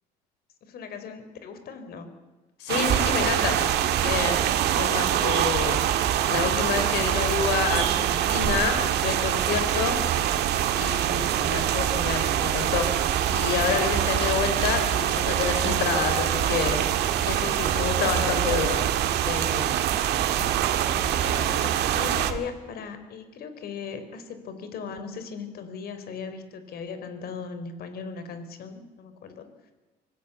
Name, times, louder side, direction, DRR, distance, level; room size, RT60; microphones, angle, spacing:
voice 1, 0.6-2.1 3.0-3.5 10.4-10.6 18.1-18.8 21.0-29.5, left 5 dB, 65° left, 10 dB, 4.0 m, -38 dB
voice 2, 2.6-3.6 4.0-4.4 4.8-5.8 6.3-10.0 10.7-13.0 13.3-16.8 17.2-18.8 19.2-19.6, left 6 dB, 90° left, 7 dB, 3.9 m, -28 dB
sound 1, 2.7-22.3, right 11 dB, 80° right, 1.9 m, -25 dB
sound 2, 2.9-22.4, right 8 dB, 50° right, 1.7 m, -32 dB
25.5 x 18.0 x 8.2 m, 1.2 s
cardioid pair, 110°, 17 cm